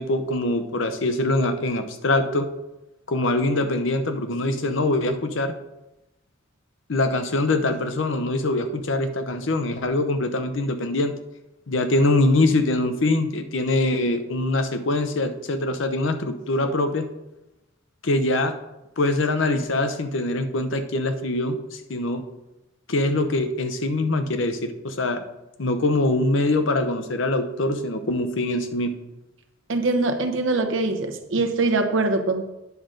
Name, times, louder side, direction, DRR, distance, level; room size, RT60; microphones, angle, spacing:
voice 1, 0.0-2.5 3.1-5.5 6.9-11.1 11.7-17.1 18.0-18.6 19.0-22.2 22.9-25.2 25.6-29.0, left 2 dB, 70° left, 8 dB, 0.8 m, -23 dB
voice 2, 29.7-32.4, right 3 dB, 70° right, 6 dB, 0.9 m, -23 dB
9.5 x 6.4 x 3.8 m, 0.95 s
head